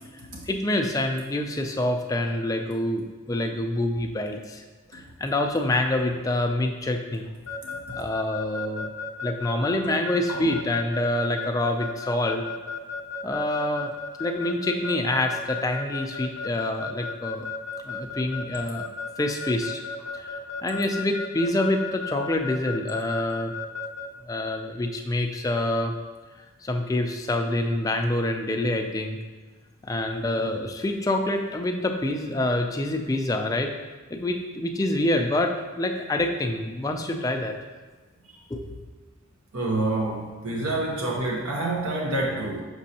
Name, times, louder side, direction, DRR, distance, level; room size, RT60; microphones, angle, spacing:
voice 1, 0.5-4.6 4.9-7.3 8.0-8.9 9.2-12.4 13.2-13.9 14.2-17.5 17.8-18.9 19.2-19.8 20.1-20.3 20.6-23.6 24.3-25.9 26.6-29.2 29.8-33.7 34.1-37.5 38.5-38.8, left 1 dB, 15° left, 3 dB, 0.3 m, -26 dB
Keyboard (musical) / Alarm, 7.5-24.1, left 5 dB, 75° left, 0.5 m, -34 dB
voice 2, 39.5-42.6, right 2 dB, 90° right, -1 dB, 0.8 m, -27 dB
6.2 x 6.0 x 2.8 m, 1.3 s
head